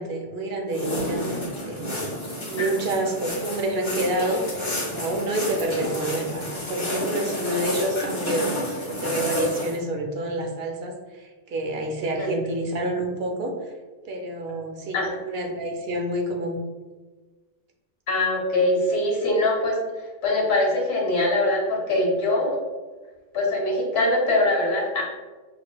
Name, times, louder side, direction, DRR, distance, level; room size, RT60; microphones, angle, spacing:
voice 1, 0.0-2.1 2.4-13.7 14.0-16.6, right 1 dB, 70° right, 2 dB, 0.9 m, -28 dB
sound 1, 0.7-9.8, left 1 dB, 30° left, 0.8 m, -30 dB
voice 2, 18.1-19.8 20.2-22.6 23.3-25.0, left 2 dB, 80° left, -1 dB, 1.2 m, -22 dB
5.9 x 2.5 x 2.3 m, 1.3 s
omnidirectional pair, 1.1 m